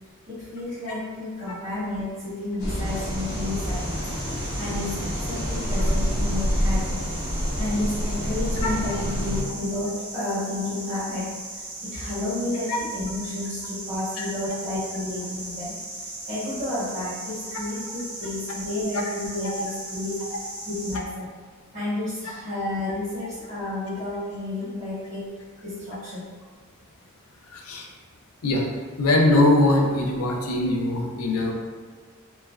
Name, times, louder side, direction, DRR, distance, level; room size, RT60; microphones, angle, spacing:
voice 1, 0.3-4.0 4.6-7.1 7.6-11.3 11.8-15.8 16.3-20.2 20.7-21.3 21.7-25.3 25.6-26.3, left 2 dB, 35° right, -15 dB, 1.0 m, -31 dB
sound 1, 2.6-9.4, equal, 35° left, 0.9 m, -27 dB
sound 2, 2.8-21.0, right 2 dB, 65° right, 1.0 m, -38 dB
voice 2, 27.5-27.9 28.4-28.7 29.0-31.5, left 2 dB, 80° left, 0 dB, 0.5 m, -21 dB
3.1 x 2.2 x 2.3 m, 1.5 s
head